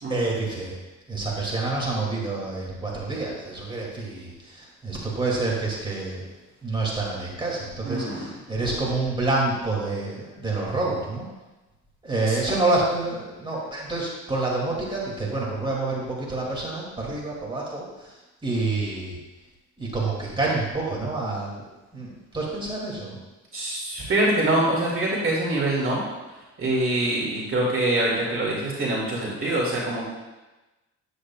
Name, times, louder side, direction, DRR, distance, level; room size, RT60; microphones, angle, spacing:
voice 1, 0.1-0.7 1.1-6.2 6.6-11.3 12.0-18.2 18.4-19.2 19.8-21.7 21.9-23.2, right 2 dB, 15° right, -4 dB, 2.5 m, -28 dB
voice 2, 7.8-8.3 12.3-12.4 23.5-26.0 26.6-30.1, right 1 dB, 45° right, -4 dB, 2.3 m, -24 dB
9.5 x 8.2 x 2.4 m, 1.1 s
cardioid pair, 90°, 30 cm